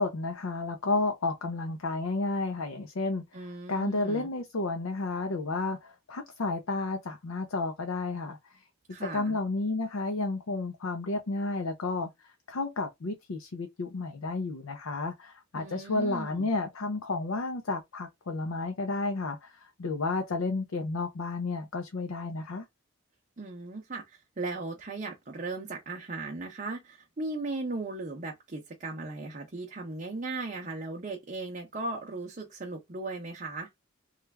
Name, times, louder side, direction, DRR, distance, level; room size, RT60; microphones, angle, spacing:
voice 1, 0.0-3.2 3.7-8.4 9.0-12.1 12.5-19.5 19.8-22.6, left 3 dB, 75° left, 0.5 m, -31 dB
voice 2, 3.3-4.3 8.9-9.4 15.5-16.5 23.4-33.7, right 2 dB, 35° right, 0.6 m, -37 dB
3.1 x 2.3 x 3.3 m
head